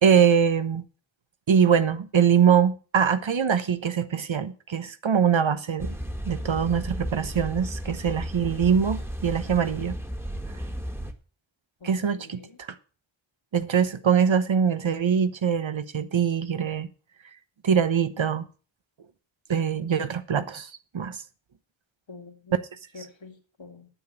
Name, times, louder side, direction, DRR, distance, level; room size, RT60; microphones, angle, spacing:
voice 1, 0.0-0.9 1.5-6.0 6.2-10.0 11.8-12.7 13.5-16.9 17.6-18.5 19.5-21.2, right 7 dB, 75° right, 1.0 m, -23 dB
sound 1, 5.8-11.1, equal, 5° right, 1.5 m, -34 dB
voice 2, 11.8-12.6 22.1-22.6 22.9-23.9, left 4 dB, 70° left, 2.3 m, -47 dB
9.1 x 7.0 x 7.5 m
wide cardioid pair, 60°, 47 cm